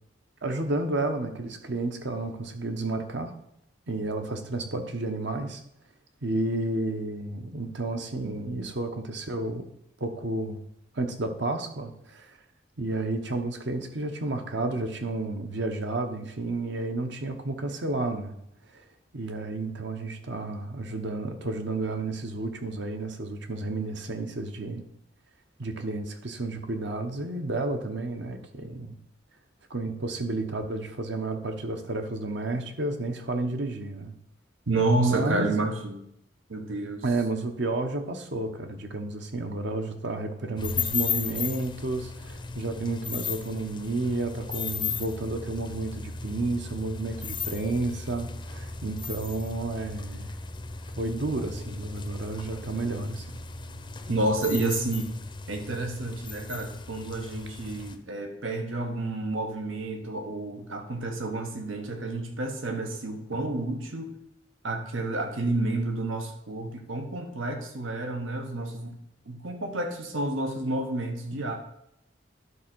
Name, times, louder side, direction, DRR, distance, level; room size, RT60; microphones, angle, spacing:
voice 1, 0.4-3.3 3.9-5.6 6.2-9.7 10.0-10.6 10.9-12.4 12.8-18.3 18.7-18.8 19.1-24.8 25.6-28.9 29.7-34.1 35.0-35.6 37.0-50.3 51.0-53.3, right 2 dB, 60° right, 6 dB, 1.0 m, -31 dB
voice 2, 34.7-36.0 36.5-37.0 51.4-51.5 54.1-55.1 55.5-64.1 64.6-68.9 69.3-71.6, right 2 dB, 90° right, 4 dB, 1.3 m, -30 dB
sound 1, 40.6-58.0, left 5 dB, 25° left, 0.6 m, -36 dB
11.0 x 3.7 x 6.1 m, 0.78 s
head